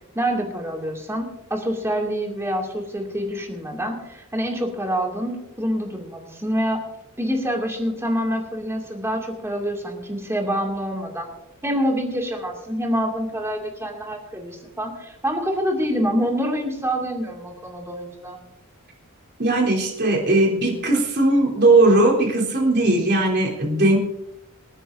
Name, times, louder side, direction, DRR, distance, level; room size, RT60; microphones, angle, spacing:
voice 1, 0.1-6.8 7.2-11.3 11.6-18.4, equal, 10° right, 0 dB, 2.3 m, -26 dB
voice 2, 19.4-24.0, right 2 dB, 50° right, -2 dB, 3.6 m, -18 dB
27.0 x 9.8 x 2.6 m, 0.94 s
head